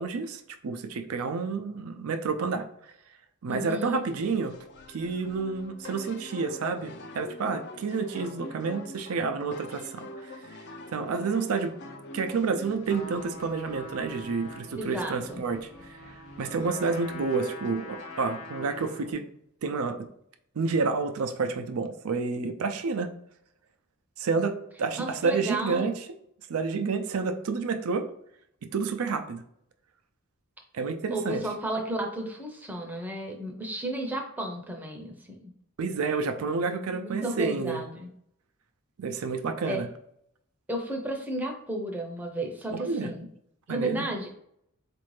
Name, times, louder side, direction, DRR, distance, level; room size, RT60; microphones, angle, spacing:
voice 1, 0.0-2.7 3.4-4.6 4.9-10.3 10.9-11.8 12.1-19.2 19.6-20.1 20.6-23.1 24.2-26.0 26.5-28.1 28.7-29.4 30.7-31.4 35.8-37.8 39.0-39.9 42.7-43.1 43.7-44.0, right 4 dB, 85° right, 7 dB, 0.5 m, -29 dB
voice 2, 3.5-4.0 14.8-15.4 25.0-25.9 31.1-35.4 36.7-38.1 39.6-39.8 40.7-43.3 43.7-44.3, right 1 dB, 10° right, 1 dB, 0.5 m, -33 dB
sound 1, 4.0-19.1, left 2 dB, 50° left, 0.4 m, -46 dB
Trumpet, 12.8-19.1, left 2 dB, 80° left, 0.9 m, -45 dB
4.2 x 2.5 x 3.2 m, 0.72 s
head